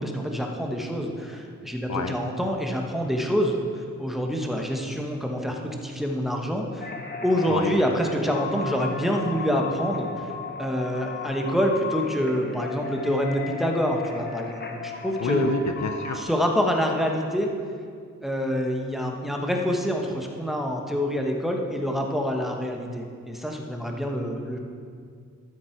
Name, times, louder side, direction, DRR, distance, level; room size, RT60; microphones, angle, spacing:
voice 1, 0.0-6.9 7.2-10.3 10.6-15.6 16.1-17.5 18.2-24.6, equal, ahead, 1 dB, 1.2 m, -26 dB
sound 1, 6.8-16.2, left 5 dB, 30° left, 1.2 m, -35 dB
voice 2, 15.2-16.3, left 6 dB, 60° left, 6 dB, 0.7 m, -28 dB
12.5 x 7.4 x 4.6 m, 2.2 s
cardioid pair, 85°, 32 cm